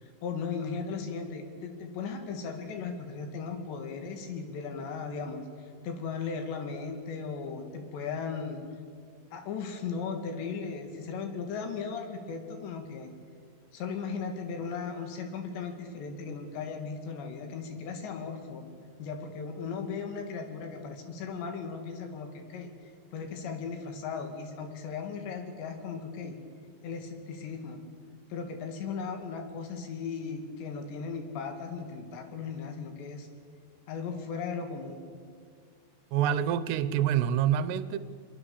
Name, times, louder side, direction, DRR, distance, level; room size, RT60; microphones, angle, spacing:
voice 1, 0.0-8.6 9.3-13.1 13.7-18.7 19.0-22.7 23.1-26.4 26.8-27.8 28.3-33.3 33.9-35.0, left 5 dB, 75° left, 5 dB, 4.4 m, -37 dB
voice 2, 36.1-38.0, right 10 dB, 75° right, 14 dB, 2.9 m, -26 dB
23.5 x 22.0 x 7.2 m, 2.1 s
omnidirectional pair, 5.1 m